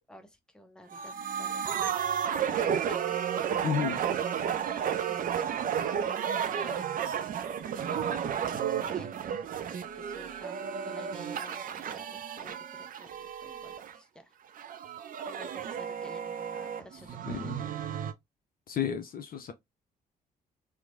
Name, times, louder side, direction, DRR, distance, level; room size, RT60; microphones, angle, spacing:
voice 1, 0.1-1.7 2.0-3.2 4.5-7.0 7.9-9.4 9.7-14.3 15.3-17.7, left 1 dB, 5° left, 0.6 m, -51 dB
sound 1, 0.9-14.0 14.6-18.1, right 8 dB, 40° right, 0.4 m, -32 dB
voice 2, 3.6-4.0 17.3-17.5 18.7-19.5, left 8 dB, 45° left, 0.5 m, -32 dB
2.9 x 2.0 x 2.4 m
hypercardioid pair, 45°, 21 cm